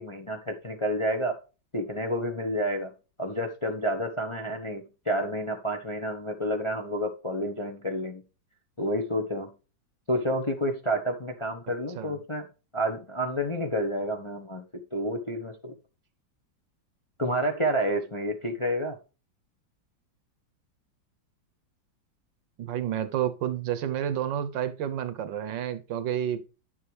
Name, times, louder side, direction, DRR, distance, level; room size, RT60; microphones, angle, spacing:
voice 1, 0.0-1.4 1.7-2.9 3.2-8.2 8.8-9.5 10.1-12.5 12.7-15.7 17.2-19.0, equal, 25° left, 0.8 m, -29 dB
voice 2, 22.6-26.4, right 10 dB, 70° right, 1.5 m, -30 dB
11.0 x 7.1 x 3.3 m
omnidirectional pair, 2.1 m